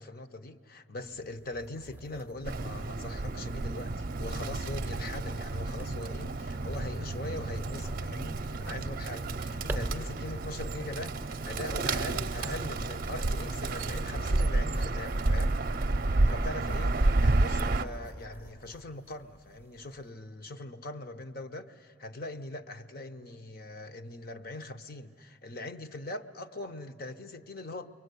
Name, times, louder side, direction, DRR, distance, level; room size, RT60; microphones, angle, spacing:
voice 1, 0.0-15.5 16.3-27.9, left 2 dB, 50° left, 9 dB, 0.9 m, -41 dB
sound 1, 1.0-20.1, right 1 dB, 10° right, 0.7 m, -48 dB
Bird, 2.4-17.9, right 2 dB, 50° right, 0.6 m, -30 dB
29.5 x 23.0 x 8.2 m, 2.5 s
head